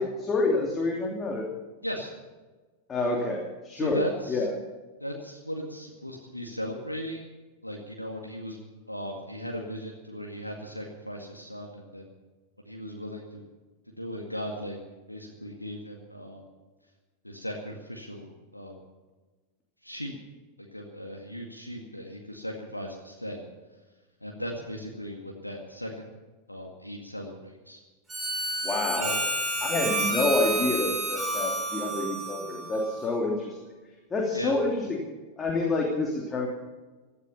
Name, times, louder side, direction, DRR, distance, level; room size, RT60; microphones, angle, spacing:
voice 1, 0.0-1.5 2.9-4.0 4.3-4.5 28.6-29.2 29.6-33.6 34.1-35.0 35.4-36.5, left 3 dB, 20° left, -1 dB, 3.1 m, -28 dB
voice 2, 3.7-4.5 5.0-7.2 7.6-8.6 8.9-12.0 12.7-13.4 14.0-14.8 15.1-16.4 17.2-18.3 18.5-18.8 19.8-20.1 20.6-23.4 24.2-25.9 26.5-27.8 29.0-29.2 34.3-34.5, equal, 90° left, 0 dB, 2.0 m, -37 dB
Harmonica, 28.1-33.3, right 2 dB, 10° right, 7.2 m, -30 dB
18.0 x 13.5 x 5.7 m, 1.3 s
figure-of-eight pair, 90°, 0 cm